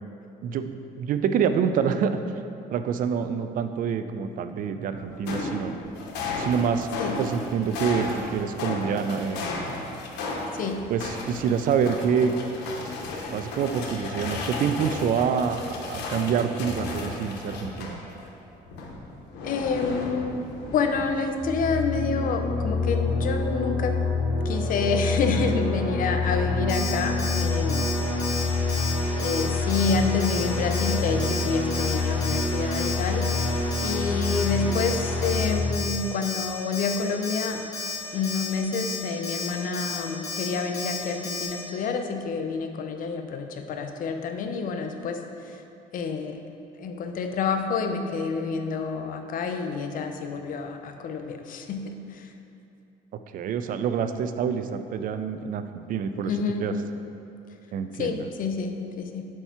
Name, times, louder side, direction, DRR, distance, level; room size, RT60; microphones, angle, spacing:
voice 1, 0.4-2.2 2.7-5.8 6.4-6.9 7.2-9.7 10.9-12.3 13.3-15.6 15.9-18.0 53.3-56.3 56.6-56.7 57.7-58.3, right 7 dB, 55° right, 9 dB, 0.4 m, -26 dB
sound 1, 4.9-18.3 18.7-21.4, left 3 dB, 90° left, 0.8 m, -34 dB
voice 2, 19.4-20.4 20.7-23.9 24.4-27.9 29.2-33.3 33.8-37.6 38.1-45.2 45.5-45.6 45.9-46.4 46.8-52.3 56.3-56.7 58.0-59.3, left 4 dB, 55° left, 5 dB, 0.6 m, -28 dB
sound 2, 21.4-35.5, left 3 dB, ahead, 1.4 m, -27 dB
Alarm, 26.7-26.9 27.2-27.4 27.7-27.9 28.2-28.4 28.7-28.9 29.2-29.4 29.7-29.9 30.2-30.4 30.7-30.9 31.2-31.4 31.7-31.9 32.2-32.4 32.7-32.9 33.2-33.4 33.7-33.9 34.2-34.4 34.7-35.0 35.2-35.5 35.7-36.0 36.2-36.5 36.7-37.0 37.2-37.5 37.7-38.0 38.2-38.5 38.7-39.0 39.2-39.5 39.7-40.0 40.2-40.5 40.7-41.0 41.2-41.5, left 4 dB, 20° left, 1.4 m, -33 dB
4.5 x 4.5 x 5.7 m, 2.7 s
cardioid pair, 110°, 17 cm